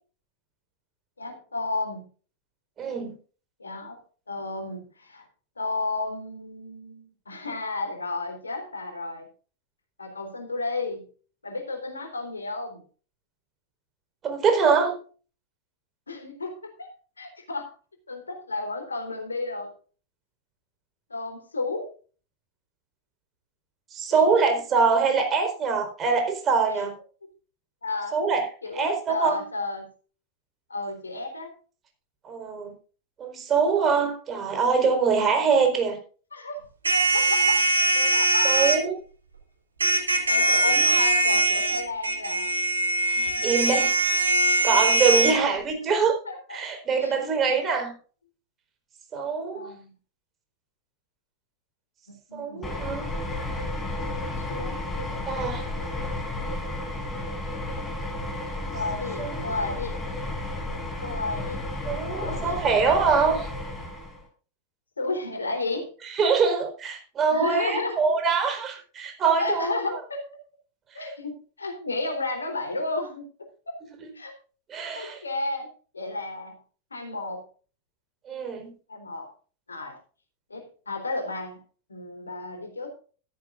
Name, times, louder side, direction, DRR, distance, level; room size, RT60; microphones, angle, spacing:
voice 1, 1.2-2.0 3.6-4.0 4.3-5.3 5.6-9.3 10.0-11.1 11.4-12.8 16.1-16.9 17.2-17.7 18.1-19.7 21.1-21.9 24.1-24.4 26.7-26.9 27.8-28.2 28.6-29.9 30.7-31.5 36.3-38.8 40.2-42.5 43.1-43.5 45.3-45.4 46.2-46.6 47.0-47.2 49.5-49.9 52.1-52.7 54.5-55.0 58.7-60.0 61.0-61.6 62.0-62.6 65.0-65.9 67.3-68.4 69.4-70.2 70.9-73.7 74.1-74.3 74.9-76.6 76.9-77.4 78.9-79.3 79.7-80.0 80.5-81.6 81.9-82.9, left 2 dB, 75° left, 5 dB, 3.7 m, -33 dB
voice 2, 2.8-3.1 14.2-15.0 23.9-26.9 28.1-28.5 28.7-29.4 32.2-32.7 33.2-36.0 38.0-38.2 38.4-38.9 43.1-43.9 44.6-46.2 46.5-47.9 49.1-49.7 52.3-53.1 55.3-55.6 59.2-59.4 61.8-63.5 66.1-69.9 74.7-75.2 78.3-78.7, right 5 dB, 25° right, 5 dB, 4.4 m, -24 dB
sound 1, 36.8-38.8 39.8-45.3, right 2 dB, 75° right, 3.2 m, -22 dB
sound 2, 52.6-64.2, left 1 dB, 15° left, 5.2 m, -32 dB
14.0 x 14.0 x 2.5 m, 0.39 s
figure-of-eight pair, 90°, 0 cm